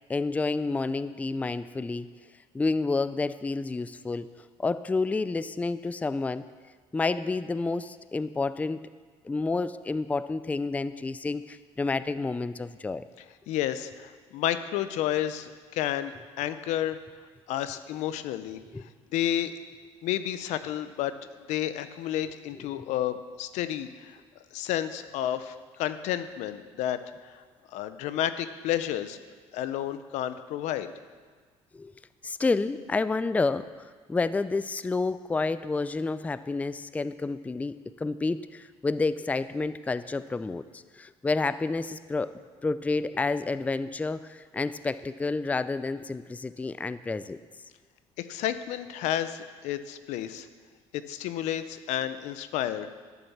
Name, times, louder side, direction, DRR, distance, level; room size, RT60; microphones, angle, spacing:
voice 1, 0.1-2.1 2.5-4.3 4.6-6.4 6.9-8.9 9.2-13.0 18.7-18.8 22.7-22.8 31.7-31.9 32.2-42.3 42.6-47.4, left 3 dB, 10° left, 14 dB, 0.4 m, -29 dB
voice 2, 13.5-17.0 17.5-19.5 20.0-21.1 21.5-24.2 24.5-27.4 27.7-29.2 29.5-30.9 48.2-50.5 50.9-52.9, left 11 dB, 85° left, 12 dB, 0.7 m, -31 dB
12.0 x 7.1 x 7.1 m, 1.5 s
cardioid pair, 100°, 12 cm